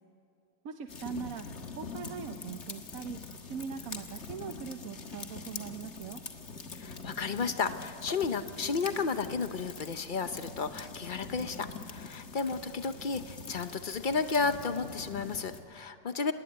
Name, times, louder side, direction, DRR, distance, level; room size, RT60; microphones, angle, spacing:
voice 1, 0.6-6.2, right 7 dB, 55° right, 7 dB, 1.1 m, -41 dB
sound 1, 0.9-15.6, left 4 dB, 40° left, 1.7 m, -44 dB
voice 2, 6.8-16.3, left 4 dB, 60° left, 10 dB, 0.5 m, -33 dB
25.5 x 19.5 x 9.9 m, 2.8 s
omnidirectional pair, 2.0 m